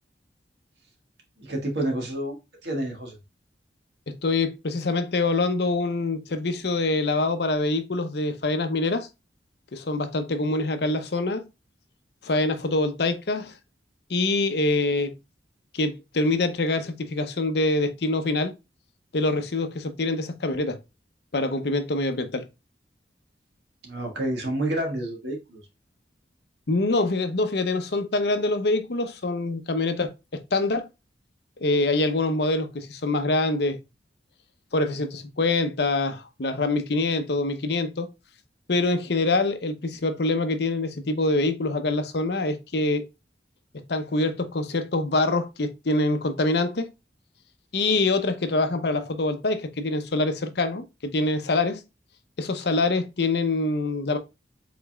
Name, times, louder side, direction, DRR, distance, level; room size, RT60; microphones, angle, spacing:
voice 1, 1.4-2.4 2.6-3.2 23.8-25.6, right 1 dB, 75° right, 1.6 m, -29 dB
voice 2, 4.1-9.1 9.7-11.5 12.2-13.5 14.1-15.2 15.7-18.5 19.1-20.8 21.3-22.5 26.7-30.9 31.6-33.8 34.7-38.1 38.7-43.1 43.9-46.9 47.7-51.8 52.4-54.2, left 2 dB, 65° left, 0.7 m, -25 dB
5.1 x 3.9 x 2.3 m
head